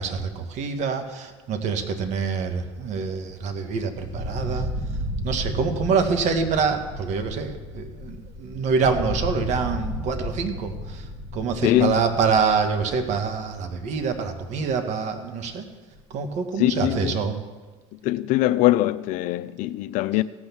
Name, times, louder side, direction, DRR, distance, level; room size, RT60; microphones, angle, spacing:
voice 1, 0.0-4.8 5.2-11.1 11.3-15.6 16.1-17.4, right 5 dB, 55° right, 1.7 m, -26 dB
sound 1, 2.5-3.8 4.1-14.8, equal, 30° right, 2.5 m, -34 dB
voice 2, 11.6-12.0 16.6-17.2 18.0-20.2, left 16 dB, 65° left, 0.6 m, -22 dB
16.5 x 6.3 x 7.2 m
supercardioid pair, 100°, 14 cm